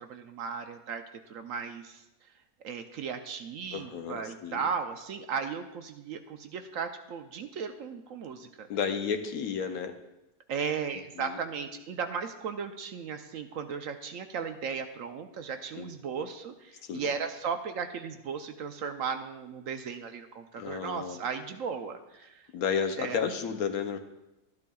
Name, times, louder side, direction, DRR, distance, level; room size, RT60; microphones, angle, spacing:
voice 1, 0.0-2.0 2.6-8.7 10.5-22.5 23.0-23.2, right 6 dB, 70° right, 7 dB, 0.9 m, -36 dB
voice 2, 3.7-4.6 8.7-10.0 11.2-11.4 15.8-16.2 16.8-17.1 20.6-21.2 22.5-24.0, left 6 dB, 70° left, 7 dB, 1.1 m, -32 dB
12.5 x 12.0 x 2.3 m, 0.95 s
omnidirectional pair, 1.6 m